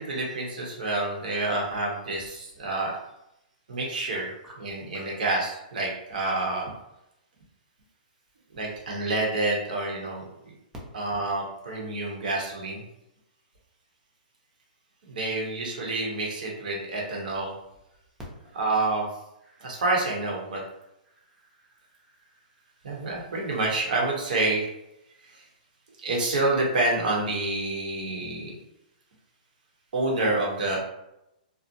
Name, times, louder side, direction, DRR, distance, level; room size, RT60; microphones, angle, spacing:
voice 1, 0.0-2.9 3.7-4.3 4.6-6.7 8.5-10.2 10.9-12.8 15.1-17.5 18.5-19.1 19.6-20.6 22.8-24.7 25.2-25.4 26.0-28.5 29.9-30.8, right 2 dB, 70° right, -2 dB, 0.9 m, -28 dB
voice 2, 4.1-4.5 4.9-5.1 18.4-18.6 19.4-19.8 21.1-22.4, right 1 dB, 10° right, -4 dB, 0.6 m, -52 dB
2.5 x 2.1 x 2.6 m, 0.85 s
hypercardioid pair, 155°, 5 cm